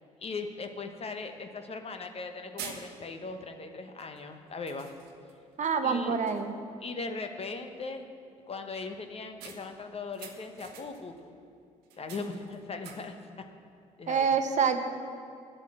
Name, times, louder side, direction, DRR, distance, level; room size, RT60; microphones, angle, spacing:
voice 1, 0.2-4.9 5.8-6.2 6.8-8.1 8.5-11.3 12.0-13.4 14.0-14.3, left 4 dB, 35° left, 6 dB, 1.1 m, -39 dB
sound 1, 1.2-1.3 2.1-2.2 2.6-3.3 4.0-4.2 4.7-5.4 5.9-6.0 6.3-6.7 9.4-11.2 11.8-13.3, right 6 dB, 70° right, 1.2 m, -47 dB
voice 2, 5.6-6.5 14.1-14.8, right 6 dB, 45° right, 7 dB, 1.0 m, -26 dB
10.5 x 8.1 x 7.5 m, 2.4 s
hypercardioid pair, 50°, 17 cm